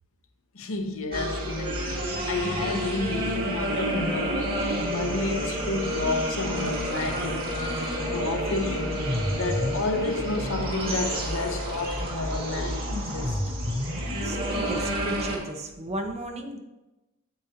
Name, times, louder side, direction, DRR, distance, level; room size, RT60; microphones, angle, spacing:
voice 1, 0.5-7.8 8.1-9.1 9.3-13.4, left 2 dB, 65° left, 0.9 m, -31 dB
sound 1, 1.1-15.4, equal, 45° right, 2.2 m, -29 dB
voice 2, 14.1-16.6, right 2 dB, 30° right, 0.8 m, -34 dB
8.7 x 7.8 x 2.8 m
head